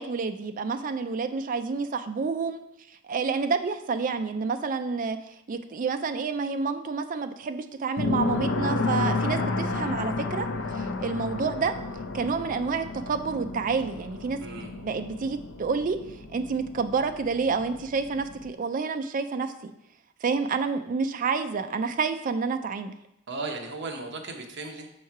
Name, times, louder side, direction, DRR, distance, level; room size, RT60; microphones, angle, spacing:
voice 1, 0.0-2.6 3.0-5.2 5.5-10.5 10.7-11.7 12.1-14.4 14.8-16.0 16.3-19.7 20.2-22.9, right 4 dB, 40° right, 8 dB, 0.3 m, -29 dB
sound 1, 8.0-18.5, left 3 dB, 60° left, 0.5 m, -32 dB
voice 2, 14.4-14.7 23.3-24.9, right 3 dB, 55° right, 2 dB, 0.9 m, -36 dB
6.4 x 3.1 x 5.7 m, 0.84 s
head